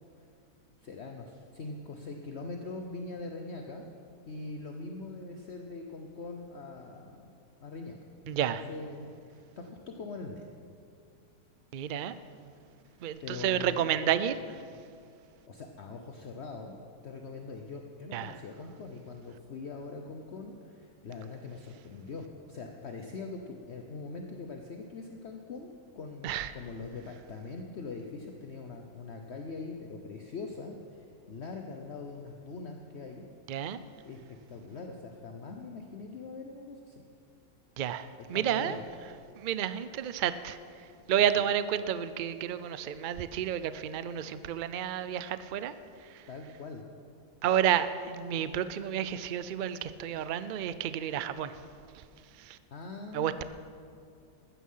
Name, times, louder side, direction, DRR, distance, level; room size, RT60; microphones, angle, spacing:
voice 1, 0.8-3.9 4.3-7.2 7.6-10.5 12.8-14.0 15.5-16.8 17.0-33.2 34.0-37.0 38.3-38.9 46.3-46.8 52.7-53.4, left 3 dB, 50° left, 3 dB, 1.1 m, -42 dB
voice 2, 8.3-8.6 11.7-12.1 13.0-14.4 18.1-18.3 26.2-26.5 33.5-33.8 37.8-38.8 39.4-40.6 41.1-45.7 46.1-46.2 47.4-51.6 52.4-52.6 53.1-53.4, right 10 dB, 65° right, 13 dB, 0.4 m, -30 dB
15.0 x 13.0 x 5.6 m, 2.4 s
omnidirectional pair, 1.6 m